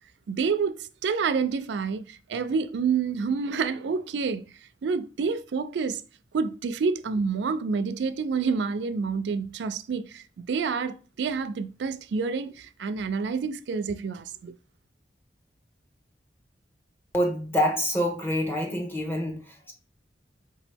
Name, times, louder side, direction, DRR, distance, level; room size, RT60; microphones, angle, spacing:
voice 1, 0.3-4.5 4.8-6.0 6.3-14.5, right 5 dB, 70° right, 0.4 m, -28 dB
voice 2, 17.1-19.7, equal, 15° left, 1.0 m, -26 dB
4.8 x 3.0 x 3.3 m
head